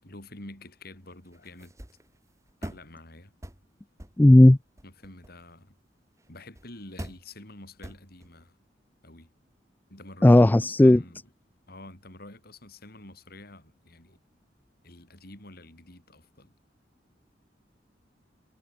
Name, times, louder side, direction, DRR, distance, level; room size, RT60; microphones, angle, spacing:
voice 1, 0.0-1.7 2.6-3.3 4.8-5.7 6.3-8.6 9.0-9.3 9.9-11.2 11.7-14.2 14.8-16.5, left 2 dB, 60° left, 7.1 m, -47 dB
sound 1, 1.1-2.9 3.4-3.7 4.0-5.5 6.2-6.3 6.5-6.7 7.0-7.3 7.8-8.3, right 1 dB, 15° right, 2.1 m, -43 dB
voice 2, 4.2-4.6 10.2-11.0, left 1 dB, 10° left, 0.3 m, -14 dB
head